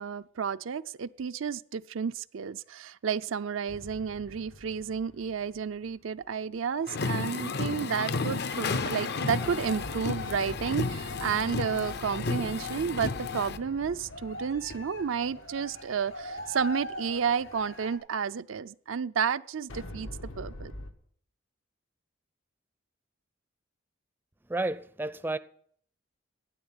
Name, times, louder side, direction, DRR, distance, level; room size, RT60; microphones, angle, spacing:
voice 1, 0.0-20.1 20.4-20.7, right 6 dB, 80° right, 0.5 m, -31 dB
sound 1, 3.7-6.2 9.4-16.6 19.7-20.9, left 1 dB, 90° left, 1.5 m, -45 dB
sound 2, 6.9-13.6, left 4 dB, 55° left, 0.7 m, -32 dB
sound 3, 8.4-17.9, equal, 75° left, 4.7 m, -44 dB
voice 2, 24.5-25.4, right 2 dB, 10° right, 0.5 m, -31 dB
12.0 x 9.5 x 8.9 m
head